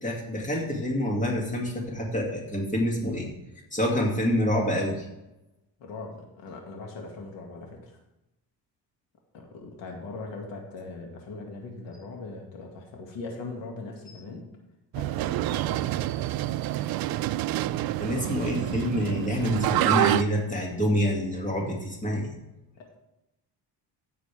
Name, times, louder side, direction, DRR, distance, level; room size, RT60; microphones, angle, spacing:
voice 1, 0.0-3.3 3.7-5.1 18.0-22.3, equal, 15° left, -1 dB, 2.4 m, -27 dB
voice 2, 5.8-8.0 9.3-14.5 14.9-16.3 22.8-23.0, left 3 dB, 90° left, 1 dB, 2.2 m, -40 dB
sound 1, 14.9-20.2, right 14 dB, 60° right, 0.5 m, -27 dB
15.5 x 7.0 x 3.5 m, 0.95 s
cardioid pair, 135°, 43 cm